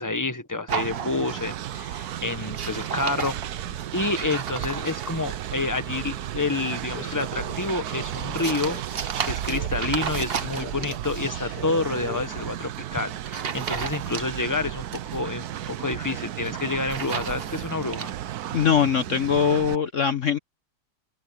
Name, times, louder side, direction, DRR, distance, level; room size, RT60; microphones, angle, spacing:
voice 1, 0.0-3.3 3.9-18.1, left 3 dB, 10° left, 1.2 m, -29 dB
sound 1, 0.7-1.6 1.9-2.1 2.4-5.3 7.2-11.2 12.6-12.8 13.2-14.5 14.7-15.7 16.3-18.1, right 6 dB, 40° right, 1.0 m, -34 dB
Train, 0.7-19.8, right 11 dB, 65° right, 1.2 m, -34 dB
sound 2, 6.8-12.2, left 3 dB, 70° left, 6.3 m, -41 dB
voice 2, 18.5-20.4, left 7 dB, 50° left, 1.1 m, -22 dB
open air
omnidirectional pair, 1.9 m